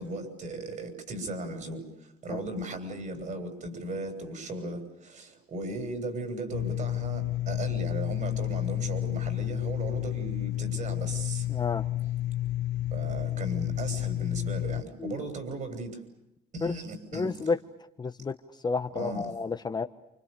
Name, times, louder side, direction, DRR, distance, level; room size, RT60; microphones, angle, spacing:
voice 1, 0.0-11.5 12.9-16.0 16.5-17.5 18.9-19.3, right 2 dB, 50° right, 8 dB, 7.4 m, -36 dB
sound 1, 6.5-14.8, left 14 dB, 80° left, 1.2 m, -31 dB
voice 2, 11.5-11.8 15.0-15.2 16.6-16.7 17.1-17.6 18.0-18.3 18.6-19.8, left 4 dB, 25° left, 8 dB, 1.2 m, -30 dB
29.5 x 26.0 x 6.9 m, 0.87 s
cardioid pair, 110°, 17 cm